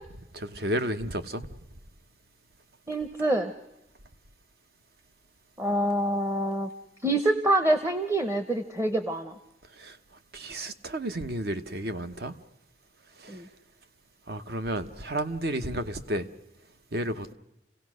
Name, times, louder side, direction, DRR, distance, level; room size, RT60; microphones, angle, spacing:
voice 1, 0.3-1.5 9.8-10.0 10.3-12.3 13.2-13.4 14.3-16.3 16.9-17.3, right 1 dB, 60° right, 1.0 m, -32 dB
voice 2, 2.9-3.5 5.6-6.7 7.0-9.4 13.3-13.5, right 1 dB, 15° right, 0.8 m, -26 dB
28.5 x 17.0 x 6.3 m
head